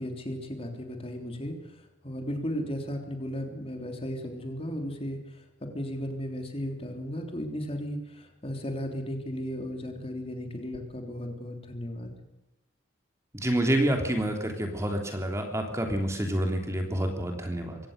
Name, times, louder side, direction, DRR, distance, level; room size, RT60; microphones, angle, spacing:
voice 1, 0.0-12.1, equal, 30° left, 4 dB, 3.4 m, -35 dB
voice 2, 13.3-17.8, right 1 dB, 15° right, 4 dB, 3.2 m, -28 dB
24.0 x 17.5 x 6.7 m, 0.94 s
head